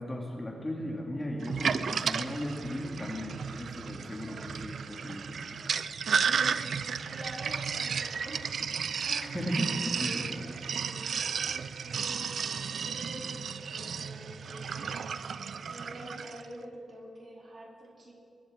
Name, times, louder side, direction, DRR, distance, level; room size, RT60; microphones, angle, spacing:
voice 1, 0.0-5.6 9.3-10.3, equal, 15° left, -1 dB, 1.6 m, -36 dB
Sink (filling or washing), 1.4-16.4, right 6 dB, 60° right, 0.3 m, -33 dB
voice 2, 4.2-4.5 6.4-6.8 7.1-8.7 9.0-9.4 9.7-11.2 11.4-12.3 12.8-15.4 15.7-18.1, right 1 dB, 40° right, -2 dB, 2.7 m, -47 dB
21.0 x 9.5 x 4.6 m, 2.6 s
wide cardioid pair, 145°, 0 cm